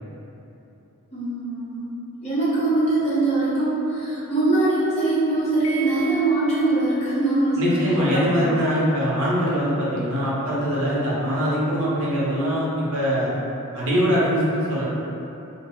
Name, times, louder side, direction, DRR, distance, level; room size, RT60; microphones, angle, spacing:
voice 1, 1.1-1.8 2.2-8.5, right 2 dB, 30° left, -11 dB, 0.7 m, -22 dB
Piano, 5.6-6.8, right 3 dB, 75° left, 0.4 m, -35 dB
voice 2, 7.6-13.4 13.7-14.8, equal, 70° right, -8 dB, 0.7 m, -22 dB
2.1 x 2.0 x 3.5 m, 2.9 s
head